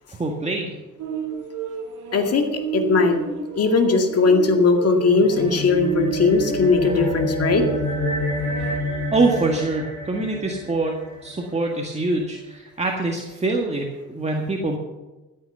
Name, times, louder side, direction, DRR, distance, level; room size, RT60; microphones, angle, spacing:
voice 1, 0.1-0.8 9.1-10.9 11.2-14.8, right 3 dB, 20° right, 0 dB, 1.8 m, -24 dB
sound 1, 1.0-8.8, right 8 dB, 85° right, 2.0 m, -31 dB
voice 2, 2.1-2.5 2.7-3.2 3.6-7.6, left 4 dB, 55° left, 4 dB, 2.2 m, -18 dB
sound 2, 5.0-11.7, left 1 dB, 80° left, 4.6 m, -29 dB
13.5 x 8.3 x 7.0 m, 1.1 s
cardioid pair, 90°, 30 cm